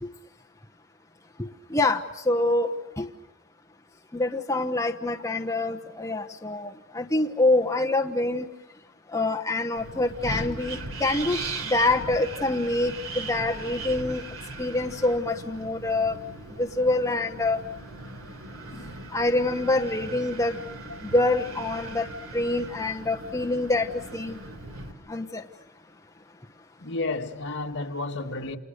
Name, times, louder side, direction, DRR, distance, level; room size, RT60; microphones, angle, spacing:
voice 1, 1.7-3.1 4.1-8.5 9.1-11.4 11.7-14.2 14.6-16.2 16.6-17.6 19.1-20.6 21.1-22.1 22.3-24.4 25.1-25.4, left 2 dB, 15° left, 1.1 m, -25 dB
Wind, 9.8-24.9, right 2 dB, 70° right, 3.3 m, -39 dB
voice 2, 18.7-19.0 20.9-21.0 26.8-28.6, left 2 dB, 55° left, 2.3 m, -32 dB
30.0 x 28.5 x 6.7 m
head